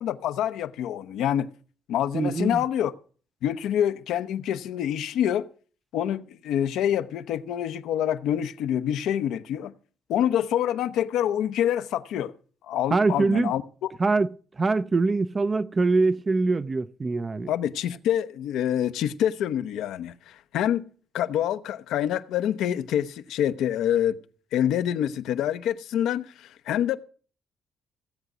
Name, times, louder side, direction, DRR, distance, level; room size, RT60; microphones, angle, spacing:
voice 1, 0.0-1.5 1.9-2.9 3.4-5.5 5.9-9.7 10.1-12.3 12.7-13.9 17.5-20.8 21.1-24.2 24.5-27.0, left 10 dB, 85° left, 0.7 m, -26 dB
voice 2, 2.1-2.6 12.9-13.5 14.0-17.5, right 3 dB, 30° right, 0.5 m, -23 dB
16.0 x 8.0 x 6.1 m
cardioid pair, 90°, 0 cm